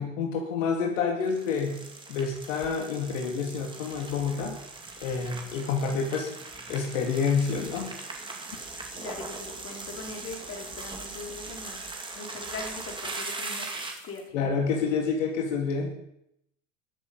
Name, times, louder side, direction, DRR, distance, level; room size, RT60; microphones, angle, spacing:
voice 1, 0.0-1.8 2.1-4.6 5.0-6.3 6.7-7.9 14.3-15.9, left 5 dB, 70° left, 2 dB, 2.6 m, -28 dB
sound 1, 1.2-14.2, right 3 dB, 10° right, 2.5 m, -40 dB
voice 2, 8.9-11.8 12.1-14.2, left 3 dB, 35° left, 2 dB, 3.7 m, -41 dB
20.0 x 7.3 x 5.5 m, 0.79 s
hypercardioid pair, 105°, 40 cm